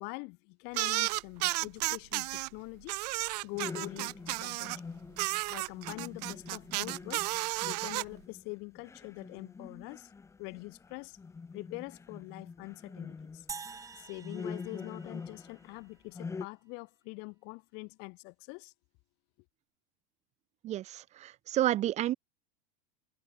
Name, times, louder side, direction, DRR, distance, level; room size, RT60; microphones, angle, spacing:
voice 1, 0.0-3.0 3.4-4.8 5.5-7.2 7.6-10.1 10.4-11.2 11.5-13.5 14.0-18.7, left 32 dB, 55° left, 2.5 m, -44 dB
sound 1, 0.7-2.5 2.9-4.8 5.2-8.0, right 21 dB, 70° right, 1.4 m, -33 dB
sound 2, 3.5-15.8 16.1-16.5, left 4 dB, 15° left, 7.3 m, -45 dB
sound 3, 13.5-15.9, right 5 dB, 15° right, 3.2 m, -47 dB
voice 2, 20.6-22.1, right 13 dB, 35° right, 1.3 m, -30 dB
supercardioid pair, 150°, 21 cm